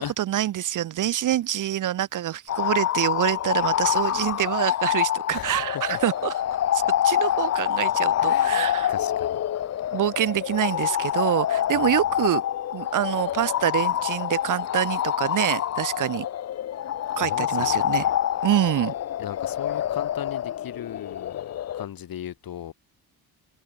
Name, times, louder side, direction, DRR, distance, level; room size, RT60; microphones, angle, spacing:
voice 1, 0.2-6.3 6.7-8.9 9.9-12.4 12.7-16.3 17.2-18.0 18.4-18.9, right 12 dB, 50° right, 0.6 m, -26 dB
sound 1, 2.5-21.8, left 11 dB, 40° left, 0.6 m, -26 dB
voice 2, 5.3-5.8 8.2-9.4 11.7-11.9 17.2-18.2 19.2-22.7, left 10 dB, 60° left, 3.5 m, -38 dB
cardioid pair, 155°, 39 cm